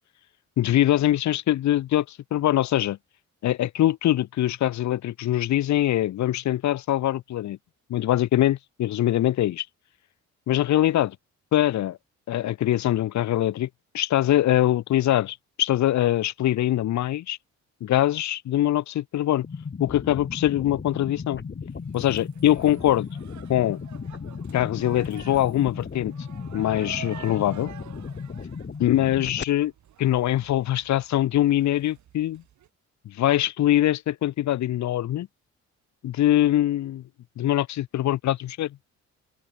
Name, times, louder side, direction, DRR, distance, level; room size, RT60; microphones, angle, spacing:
voice 1, 0.6-3.0 3.4-7.6 7.9-9.7 10.5-11.2 11.5-12.0 12.3-13.7 13.9-17.4 17.8-19.5 19.8-21.4 21.9-23.1 23.5-23.8 24.5-26.1 26.5-27.7 28.8-29.7 30.0-32.4 33.0-35.3 36.0-37.0 37.4-38.8, left 13 dB, 70° left, 1.1 m, -23 dB
sound 1, 19.4-29.4, left 5 dB, 35° left, 7.7 m, -36 dB
sound 2, 21.7-32.7, right 11 dB, 70° right, 3.4 m, -48 dB
open air
cardioid pair, 90°, 30 cm